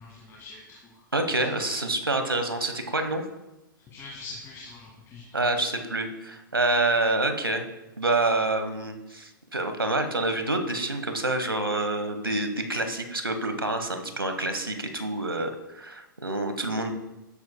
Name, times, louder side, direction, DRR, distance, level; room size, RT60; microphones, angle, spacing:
voice 1, 0.0-1.0 1.4-1.5 3.9-5.4, left 3 dB, 25° left, -4 dB, 2.1 m, -44 dB
voice 2, 1.1-3.2 5.3-7.6 8.0-16.9, right 2 dB, 90° right, 7 dB, 1.2 m, -27 dB
13.0 x 10.0 x 2.2 m, 0.98 s
figure-of-eight pair, 110°, 12 cm